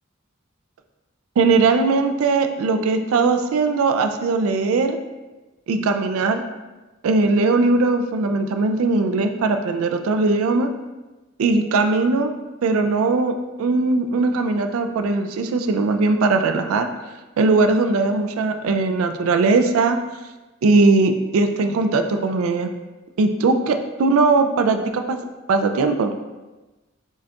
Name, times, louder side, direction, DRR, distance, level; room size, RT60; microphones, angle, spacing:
voice 1, 1.4-5.0 5.7-6.4 7.0-10.7 11.4-12.3 12.6-16.9 17.4-20.0 20.6-22.7 23.2-25.2 25.5-26.1, right 3 dB, 85° right, 7 dB, 0.3 m, -19 dB
4.4 x 2.3 x 2.8 m, 1.1 s
head